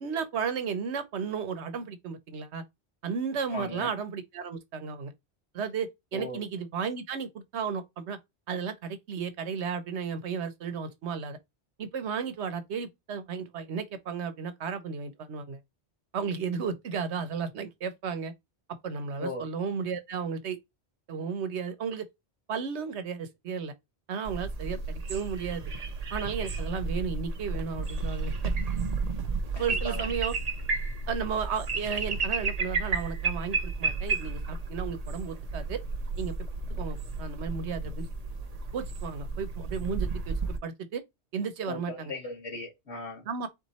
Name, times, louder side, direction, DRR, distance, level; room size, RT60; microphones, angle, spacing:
voice 1, 0.0-2.6 3.0-5.1 5.5-8.2 8.5-11.4 11.8-15.6 16.1-18.3 18.8-20.6 21.1-22.1 22.5-23.7 24.1-25.7 26.1-28.5 29.6-30.3 31.1-35.8 36.2-36.5 36.8-38.1 38.7-41.0 41.3-42.1 43.2-43.5, right 6 dB, 85° right, 1.1 m, -34 dB
voice 2, 3.5-3.9 6.1-6.4 19.2-19.4 29.5-30.1 41.7-43.2, left 2 dB, 85° left, 2.6 m, -37 dB
sound 1, 24.3-40.6, right 4 dB, 40° right, 0.7 m, -32 dB
4.2 x 3.1 x 4.0 m
omnidirectional pair, 1.1 m